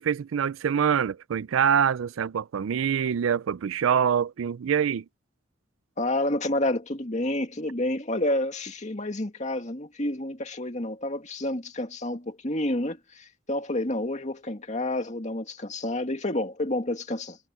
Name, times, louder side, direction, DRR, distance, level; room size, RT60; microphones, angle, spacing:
voice 1, 0.0-5.0, right 8 dB, 90° right, 0.4 m, -25 dB
voice 2, 6.0-17.4, left 1 dB, 35° left, 2.2 m, -29 dB
head